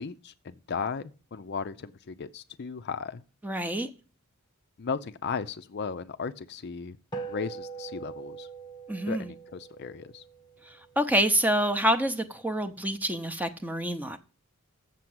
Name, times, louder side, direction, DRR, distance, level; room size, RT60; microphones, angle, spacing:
voice 1, 0.0-3.2 4.8-7.0 7.3-8.5 9.1-10.2, left 5 dB, 50° left, 0.5 m, -36 dB
voice 2, 3.4-3.9 8.9-9.3 10.7-14.2, equal, 10° right, 0.7 m, -27 dB
sound 1, 7.1-11.8, right 5 dB, 20° left, 1.1 m, -43 dB
7.4 x 5.9 x 7.8 m
head